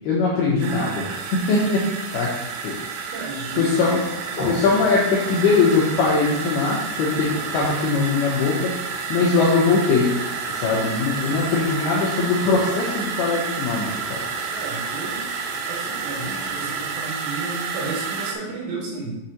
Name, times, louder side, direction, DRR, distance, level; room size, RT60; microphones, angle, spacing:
voice 1, 0.0-1.9 2.1-2.3 2.6-3.1 3.6-4.0 4.4-8.8 9.1-10.1 10.5-14.2, left 4 dB, 80° left, -5 dB, 2.3 m, -21 dB
sound 1, 0.6-18.3, right 5 dB, 90° right, 2.4 m, -30 dB
voice 2, 3.1-4.0 14.5-15.3 15.7-19.1, right 3 dB, 70° right, -4 dB, 3.5 m, -33 dB
sound 2, 3.2-17.1, left 1 dB, 65° left, 1.0 m, -39 dB
7.6 x 5.9 x 2.9 m, 0.99 s
omnidirectional pair, 5.6 m